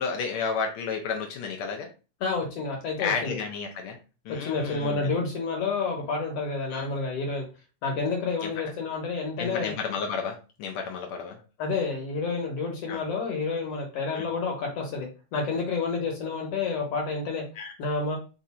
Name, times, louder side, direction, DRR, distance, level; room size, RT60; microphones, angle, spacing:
voice 1, 0.0-1.9 3.0-4.0 4.2-5.1 6.7-6.9 8.4-8.5 9.4-11.4 12.9-13.0 14.1-14.3 17.6-17.7, left 5 dB, 90° left, 2 dB, 1.1 m, -32 dB
voice 2, 2.2-3.4 4.4-7.4 7.8-9.7 11.6-17.4 17.8-18.2, left 4 dB, 65° left, 0 dB, 1.7 m, -29 dB
4.6 x 2.5 x 4.1 m, 0.33 s
omnidirectional pair, 3.3 m